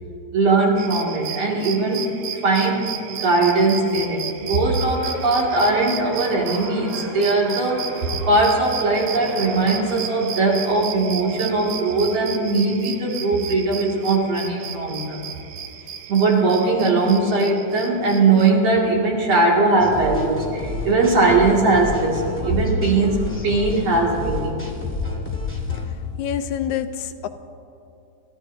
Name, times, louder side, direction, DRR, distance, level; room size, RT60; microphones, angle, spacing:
voice 1, 0.3-15.2 16.1-24.6, right 3 dB, 60° right, -3 dB, 3.3 m, -20 dB
sound 1, 0.8-18.5, right 8 dB, 80° right, 1.2 m, -34 dB
sound 2, 4.7-10.5, right 1 dB, 35° right, 5.0 m, -38 dB
sound 3, 19.8-25.9, left 3 dB, 5° left, 1.7 m, -30 dB
voice 2, 26.2-27.3, left 9 dB, 85° left, 10 dB, 2.0 m, -26 dB
27.5 x 14.0 x 2.7 m, 2.6 s
omnidirectional pair, 3.3 m